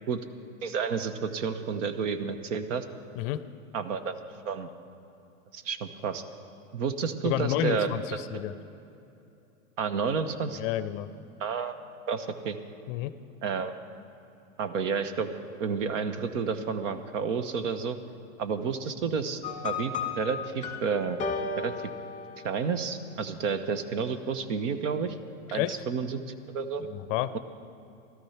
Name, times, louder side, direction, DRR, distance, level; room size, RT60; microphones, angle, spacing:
voice 1, 0.6-2.8 3.7-4.1 4.4-4.7 5.5-6.2 6.7-8.0 8.3-8.4 9.8-10.6 11.4-11.8 12.1-12.6 13.4-13.7 14.6-15.3 15.6-18.0 18.4-21.2 21.6-21.9 22.4-25.2 25.5-26.2 26.5-26.8, right 5 dB, 65° right, 10 dB, 1.1 m, -30 dB
voice 2, 7.2-8.5 10.6-11.1 12.9-13.1 25.5-25.8 26.8-27.4, left 13 dB, 45° left, 14 dB, 0.5 m, -30 dB
sound 1, 19.4-22.8, left 4 dB, 20° left, 1.2 m, -34 dB
14.5 x 13.0 x 5.8 m, 2.8 s
hypercardioid pair, 125°, 40 cm